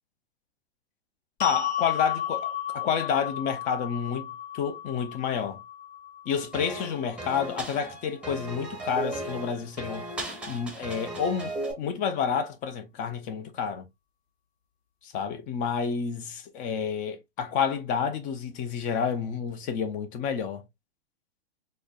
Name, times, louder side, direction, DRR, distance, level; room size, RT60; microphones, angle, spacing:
sound 1, 1.4-7.6, left 10 dB, 75° left, 1.0 m, -34 dB
voice 1, 1.4-5.6 6.3-10.1 10.5-13.8 15.0-20.6, left 7 dB, 25° left, 0.5 m, -29 dB
sound 2, 6.5-11.7, right 1 dB, 5° right, 0.7 m, -36 dB
4.2 x 2.2 x 2.3 m
hypercardioid pair, 120°, 32 cm